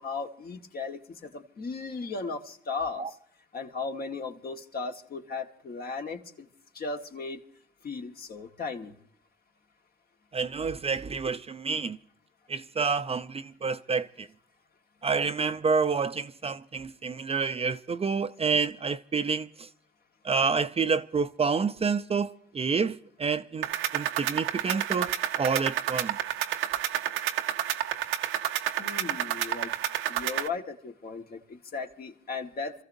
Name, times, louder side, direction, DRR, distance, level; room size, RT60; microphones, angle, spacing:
voice 1, 0.0-3.0 3.5-6.5 6.7-7.4 7.8-8.9 28.8-29.7 30.1-32.7, left 4 dB, 50° left, 1.5 m, -36 dB
voice 2, 10.3-12.0 12.5-14.3 15.0-19.7 20.2-23.7 23.9-26.2, right 5 dB, 30° right, 0.5 m, -28 dB
sound 1, 23.6-30.5, right 11 dB, 90° right, 0.7 m, -30 dB
29.0 x 14.5 x 2.7 m
cardioid pair, 90°, 20 cm